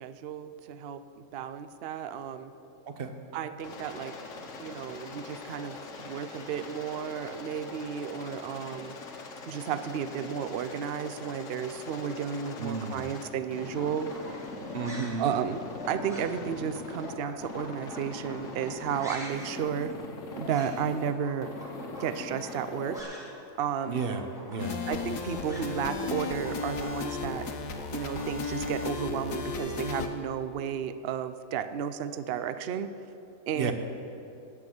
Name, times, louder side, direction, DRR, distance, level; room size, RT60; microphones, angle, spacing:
voice 1, 0.0-2.5 3.3-9.0 9.5-14.1 15.2-19.9 20.4-21.5 22.0-23.0 23.6-24.0 24.9-27.5 27.9-32.9 33.5-33.7, right 8 dB, 65° right, 11 dB, 0.6 m, -33 dB
Aircraft, 3.6-15.1 15.4-17.1 17.4-19.0 19.3-21.1 21.4-23.0, left 4 dB, 55° left, 1.4 m, -42 dB
voice 2, 12.6-13.1 14.7-15.3 23.9-24.8 33.6-33.7, right 5 dB, 45° right, 7 dB, 0.9 m, -33 dB
sound 1, 13.7-23.4 23.7-28.7, equal, ahead, 2.2 m, -45 dB
sound 2, 24.6-30.1, left 4 dB, 90° left, 1.6 m, -34 dB
18.0 x 6.0 x 7.8 m, 2.8 s
omnidirectional pair, 1.7 m